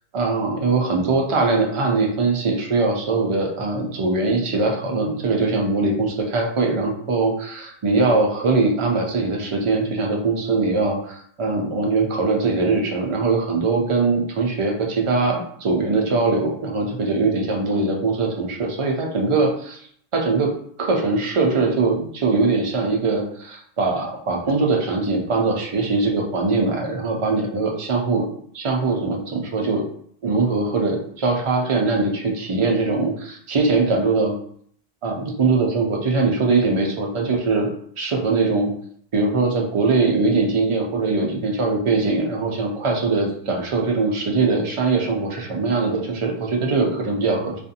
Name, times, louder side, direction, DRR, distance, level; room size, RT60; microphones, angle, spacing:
voice 1, 0.1-19.8 20.1-20.5 20.8-28.3 28.5-29.8 30.2-34.4 35.0-37.7 38.0-38.7 39.1-47.6, right 3 dB, 45° right, 0 dB, 0.4 m, -21 dB
2.5 x 2.4 x 2.7 m, 0.62 s
omnidirectional pair, 1.0 m